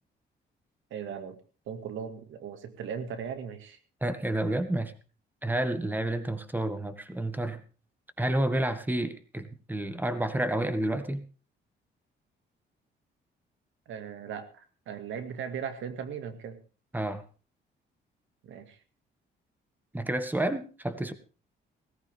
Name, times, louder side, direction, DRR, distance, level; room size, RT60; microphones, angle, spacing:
voice 1, 0.9-1.4 1.7-3.8 13.9-16.6 18.4-18.8, right 7 dB, 80° right, 9 dB, 2.1 m, -38 dB
voice 2, 4.0-4.9 5.4-7.6 8.2-11.2 16.9-17.2 19.9-21.1, right 1 dB, 10° right, 10 dB, 1.8 m, -30 dB
17.5 x 14.5 x 3.6 m, 0.35 s
cardioid pair, 90°, 20 cm